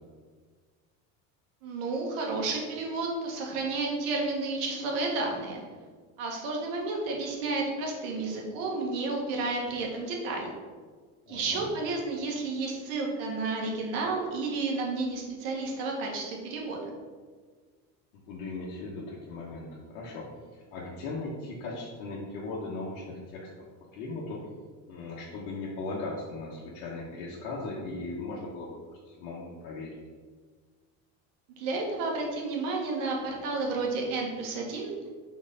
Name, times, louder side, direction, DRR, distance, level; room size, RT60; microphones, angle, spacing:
voice 1, 1.6-5.6 6.2-10.5 11.3-16.8 31.6-34.9, right 3 dB, 85° right, 0 dB, 1.6 m, -31 dB
voice 2, 11.3-11.7 18.3-20.3 20.5-23.5 23.9-24.4 24.9-28.8 29.0-30.0, left 3 dB, 90° left, -6 dB, 1.3 m, -38 dB
4.3 x 4.2 x 5.5 m, 1.5 s
cardioid pair, 120°, 38 cm